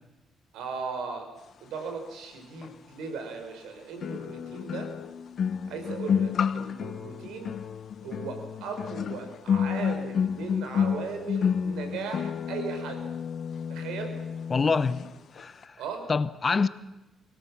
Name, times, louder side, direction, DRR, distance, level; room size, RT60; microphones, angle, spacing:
voice 1, 0.5-1.3 1.6-4.9 5.7-7.5 8.0-13.1 13.7-14.2 15.8-16.1, right 5 dB, 85° right, 4.4 m, -37 dB
sound 1, 2.6-2.7 4.0-15.1 15.4-15.6, left 7 dB, 60° left, 1.0 m, -30 dB
voice 2, 14.5-15.0 15.4-15.7 16.1-16.7, left 4 dB, 35° left, 0.9 m, -25 dB
24.5 x 17.5 x 7.3 m
cardioid pair, 90°, 0 cm